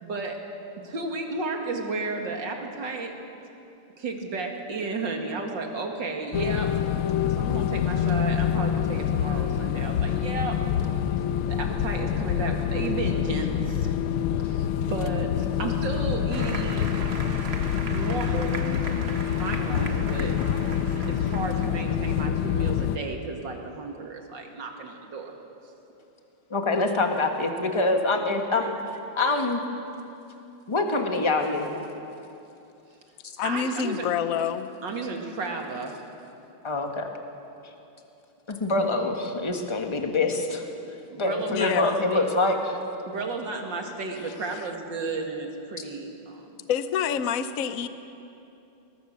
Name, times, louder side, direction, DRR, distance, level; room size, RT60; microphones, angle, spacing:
voice 1, 0.0-0.4 0.8-3.1 4.0-6.7 7.3-10.6 11.5-14.0 14.4-16.9 17.9-18.8 19.3-20.4 21.1-25.3 33.4-34.1 34.8-36.0 41.1-42.3 43.0-46.5, right 3 dB, 60° right, 2 dB, 2.8 m, -33 dB
sound 1, 6.3-23.0, left 9 dB, 80° left, 1.6 m, -26 dB
Applause, 16.3-22.0, right 3 dB, 35° right, 1.5 m, -39 dB
voice 2, 26.5-28.7 29.2-29.6 30.7-31.8 36.6-37.1 38.5-40.6 41.2-42.8, left 2 dB, 15° left, 3 dB, 1.5 m, -25 dB
voice 3, 33.4-34.7 41.5-42.0 46.7-47.9, left 7 dB, 60° left, 10 dB, 0.9 m, -27 dB
21.5 x 21.5 x 6.7 m, 2.8 s
omnidirectional pair, 2.3 m